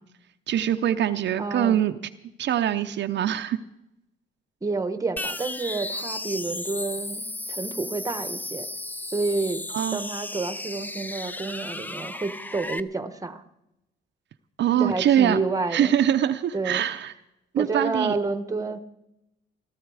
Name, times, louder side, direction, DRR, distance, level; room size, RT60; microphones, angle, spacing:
voice 1, 0.5-2.0 2.4-3.6 9.7-10.0 14.6-15.4 15.7-17.1 17.5-18.2, right 10 dB, 65° right, 7 dB, 0.6 m, -23 dB
voice 2, 1.4-1.8 4.6-8.7 9.1-9.6 9.9-13.4 14.8-15.9 16.5-16.8 17.6-18.8, right 3 dB, 15° right, 11 dB, 1.0 m, -29 dB
sound 1, 5.2-12.8, left 1 dB, 10° left, 0.5 m, -34 dB
17.5 x 12.5 x 4.8 m, 0.89 s
cardioid pair, 90°, 20 cm